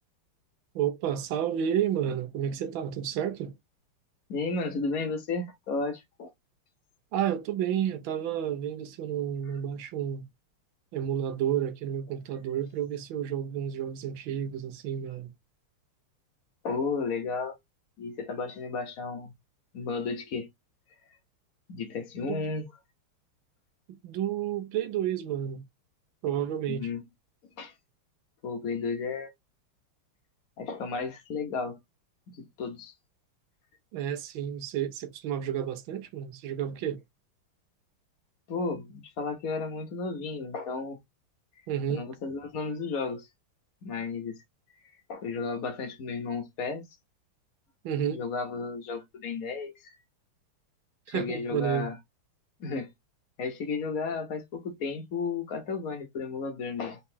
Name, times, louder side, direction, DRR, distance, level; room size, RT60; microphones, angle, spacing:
voice 1, 0.7-3.5 7.1-10.3 10.9-15.3 22.3-22.5 23.9-25.6 26.2-26.9 33.9-37.0 41.7-42.1 47.8-48.2 51.1-51.9, right 9 dB, 70° right, 1.5 m, -31 dB
voice 2, 4.3-6.3 16.6-17.6 18.0-19.3 19.7-20.5 21.7-22.7 26.3-26.4 26.7-27.0 27.6-27.7 28.4-29.3 30.6-31.8 32.3-32.9 38.5-41.0 41.9-43.3 43.8-44.4 44.7-44.8 45.1-46.8 48.1-50.0 51.1-52.0 52.6-52.9 53.4-57.0, left 4 dB, 50° left, 1.1 m, -33 dB
4.2 x 4.0 x 2.7 m
omnidirectional pair, 2.4 m